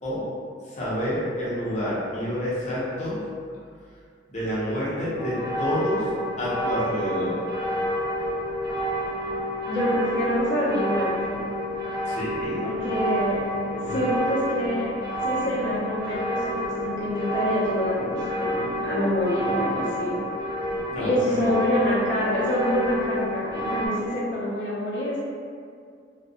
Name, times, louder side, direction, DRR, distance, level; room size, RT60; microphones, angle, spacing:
voice 1, 0.7-3.2 4.3-6.1 6.4-7.4 12.1-12.7 13.8-13.9 20.9-21.5, equal, 35° left, -9 dB, 0.7 m, -28 dB
sound 1, 5.1-23.9, equal, 55° right, 0.6 m, -29 dB
voice 2, 9.7-11.4 12.6-13.4 13.7-14.9 15.2-20.2 21.0-25.2, equal, 70° left, -8 dB, 0.8 m, -26 dB
2.6 x 2.3 x 2.2 m, 2.2 s
head